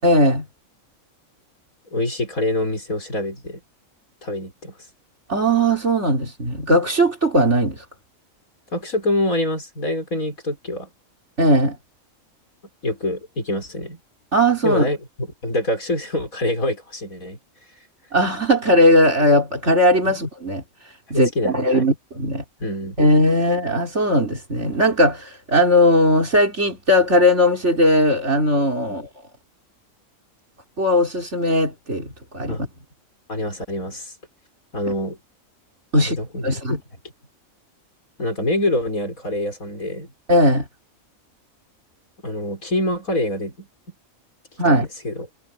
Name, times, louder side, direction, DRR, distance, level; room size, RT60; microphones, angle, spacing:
voice 1, 0.0-0.5 5.3-7.9 11.4-11.8 14.3-14.9 18.1-22.4 23.0-29.1 30.8-32.1 32.3-32.7 35.9-36.2 36.4-36.8 40.3-40.7 44.6-44.9, equal, 55° right, 5.4 m, -18 dB
voice 2, 1.9-3.6 4.2-4.7 8.7-10.9 12.8-14.0 14.6-17.4 20.1-20.2 21.1-21.9 22.6-22.9 32.5-32.7 33.3-34.1 34.7-35.2 36.0-36.8 38.2-40.1 42.2-43.7 44.6-45.3, left 1 dB, 85° left, 6.6 m, -25 dB
omnidirectional pair, 1.4 m